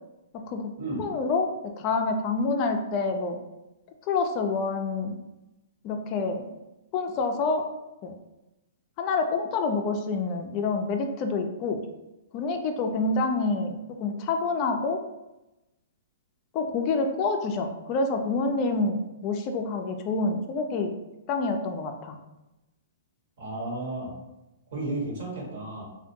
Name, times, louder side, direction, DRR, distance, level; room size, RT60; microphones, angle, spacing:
voice 1, 0.3-0.7 1.0-1.5 1.8-3.4 4.1-5.1 5.8-6.5 6.9-7.7 8.0-8.1 9.0-11.8 12.3-15.0 16.5-20.9 21.3-22.2, left 3 dB, 35° left, 4 dB, 0.3 m, -27 dB
voice 2, 23.4-24.1 24.7-25.8, right 2 dB, 60° right, -4 dB, 1.2 m, -33 dB
2.5 x 2.2 x 2.7 m, 0.97 s
hypercardioid pair, 135°, 0 cm